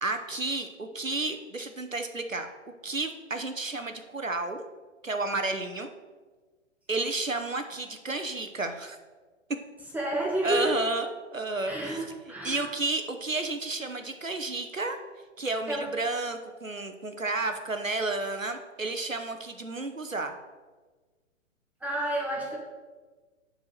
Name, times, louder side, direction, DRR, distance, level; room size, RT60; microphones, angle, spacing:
voice 1, 0.0-2.5 2.8-4.6 5.0-5.9 6.9-9.0 10.4-12.0 12.4-15.0 15.4-20.4, right 2 dB, 90° right, 6 dB, 1.1 m, -31 dB
voice 2, 9.9-10.8 11.6-12.7 15.7-15.9 21.8-22.6, right 1 dB, 5° right, -2 dB, 1.2 m, -30 dB
9.5 x 4.6 x 6.6 m, 1.4 s
figure-of-eight pair, 120°, 38 cm